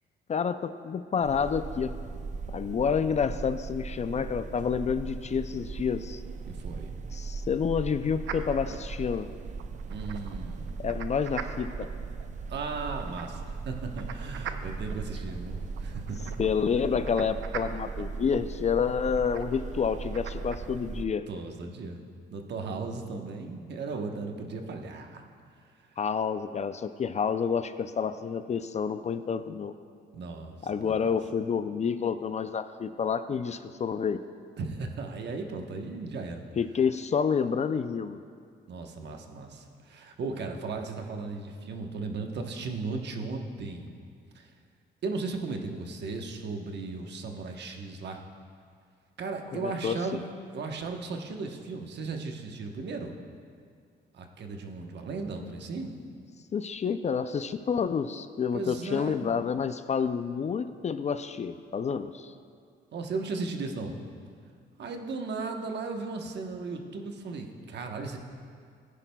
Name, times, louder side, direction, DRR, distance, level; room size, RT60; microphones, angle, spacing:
voice 1, 0.3-1.9 2.5-6.2 7.1-9.3 10.8-11.9 16.4-21.3 26.0-29.7 30.6-34.2 36.6-38.2 49.6-49.9 56.5-62.3, left 6 dB, 35° left, 11 dB, 0.4 m, -29 dB
sound 1, 1.2-21.0, right 4 dB, 40° right, 0.5 m, -38 dB
voice 2, 6.5-6.9 9.9-10.8 12.5-16.2 21.3-22.0 22.3-25.2 30.1-31.1 34.6-36.4 38.7-44.0 44.3-44.5 45.0-48.2 49.2-50.2 50.5-53.1 54.1-55.9 58.5-59.3 62.9-64.0 64.8-68.2, right 3 dB, 60° right, 4 dB, 1.1 m, -36 dB
sound 2, 8.2-20.6, right 8 dB, 80° right, 0.6 m, -44 dB
15.5 x 10.0 x 2.3 m, 2.2 s
cardioid pair, 90°, 20 cm